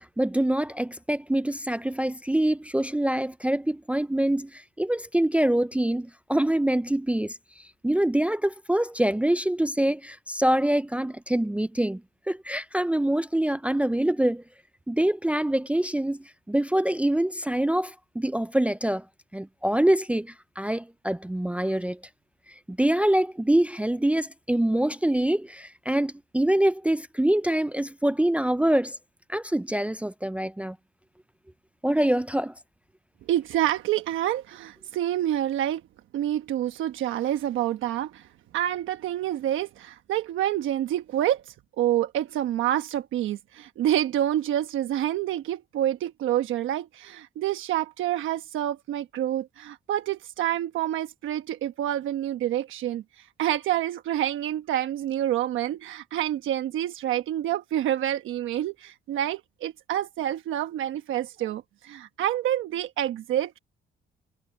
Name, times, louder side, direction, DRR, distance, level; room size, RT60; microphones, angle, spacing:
voice 1, 0.0-7.4 7.8-12.0 12.3-14.4 14.9-19.0 19.3-22.0 22.7-29.0 29.3-30.8 31.8-32.5, right 1 dB, 5° right, 0.5 m, -25 dB
voice 2, 33.3-35.8 36.1-38.3 38.5-63.6, right 12 dB, 80° right, 1.2 m, -28 dB
cardioid pair, 90°, 20 cm